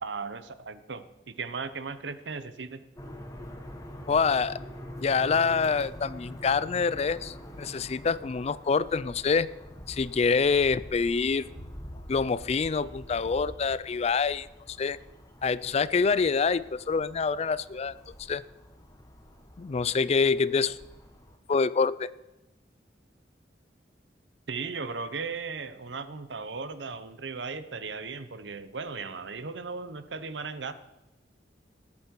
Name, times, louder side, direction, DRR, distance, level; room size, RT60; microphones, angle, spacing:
voice 1, 0.0-2.8 24.5-30.7, right 4 dB, 85° right, 12 dB, 0.9 m, -37 dB
sound 1, 2.9-21.4, equal, 20° left, 1.5 m, -45 dB
voice 2, 4.1-4.6 5.0-9.5 9.9-11.5 12.1-15.0 15.4-17.9 18.3-18.4 19.6-20.8 21.5-22.1, left 5 dB, 35° left, 18 dB, 0.4 m, -26 dB
19.5 x 8.5 x 4.6 m, 1.0 s
head